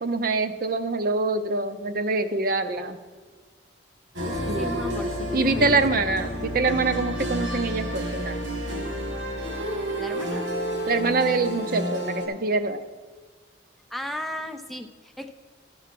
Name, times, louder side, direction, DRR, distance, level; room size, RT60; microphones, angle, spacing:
voice 1, 0.0-3.0 4.5-4.7 5.3-8.4 10.9-12.8, right 3 dB, 55° right, 9 dB, 0.6 m, -25 dB
sound 1, 4.1-12.3, equal, 90° right, 1.8 m, -30 dB
voice 2, 4.2-6.2 10.0-10.5 13.9-15.3, left 1 dB, ahead, 5 dB, 0.4 m, -36 dB
12.0 x 4.7 x 5.9 m, 1.4 s
head